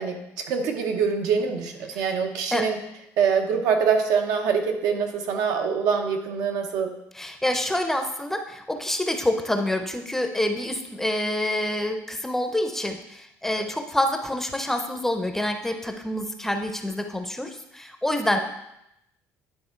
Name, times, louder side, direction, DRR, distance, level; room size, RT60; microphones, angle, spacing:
voice 1, 0.0-2.8 3.2-7.0, right 6 dB, 80° right, 4 dB, 1.0 m, -24 dB
voice 2, 7.1-18.4, left 1 dB, 5° left, 5 dB, 0.6 m, -27 dB
10.0 x 3.5 x 4.4 m, 0.82 s
cardioid pair, 135°, 6 cm